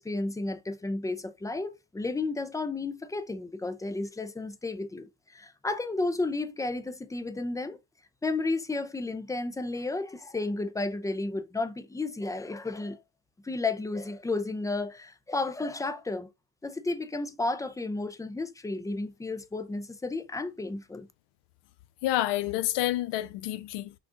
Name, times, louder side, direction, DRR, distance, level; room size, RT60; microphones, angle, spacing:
voice 1, 0.0-7.8 8.2-13.0 13.4-16.3 16.6-21.1, left 2 dB, 10° left, 0.3 m, -32 dB
voice 2, 22.0-24.0, left 15 dB, 65° left, 0.5 m, -29 dB
5.9 x 2.4 x 2.5 m
supercardioid pair, 65°, 46 cm